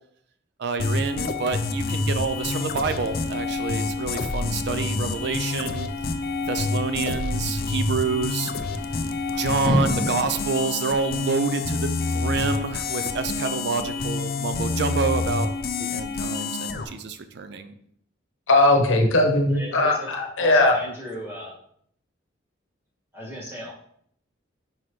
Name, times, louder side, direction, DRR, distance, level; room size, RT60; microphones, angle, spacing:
voice 1, 0.6-5.9 6.5-8.5 9.4-15.5 15.8-17.7, right 5 dB, 55° right, 10 dB, 0.4 m, -28 dB
sound 1, 0.8-16.8, left 3 dB, 50° left, 0.5 m, -28 dB
sound 2, 1.7-10.7, equal, 40° right, 2.1 m, -35 dB
voice 2, 18.5-20.7, left 2 dB, 75° left, 3 dB, 1.0 m, -19 dB
voice 3, 19.5-20.1 20.4-21.5 23.1-23.7, equal, 10° right, -5 dB, 1.8 m, -36 dB
5.9 x 5.3 x 3.1 m, 0.67 s
head